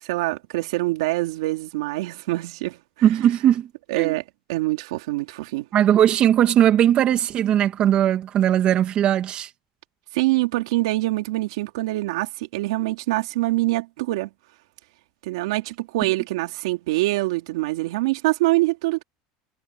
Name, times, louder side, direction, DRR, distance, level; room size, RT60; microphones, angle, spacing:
voice 1, 0.0-2.8 3.9-4.2 4.5-5.7 10.1-14.3 15.2-19.0, right 19 dB, 85° right, 3.6 m, -24 dB
voice 2, 3.0-3.7 4.0-4.2 5.7-9.5, right 11 dB, 40° right, 2.2 m, -19 dB
supercardioid pair, 130°, 3 cm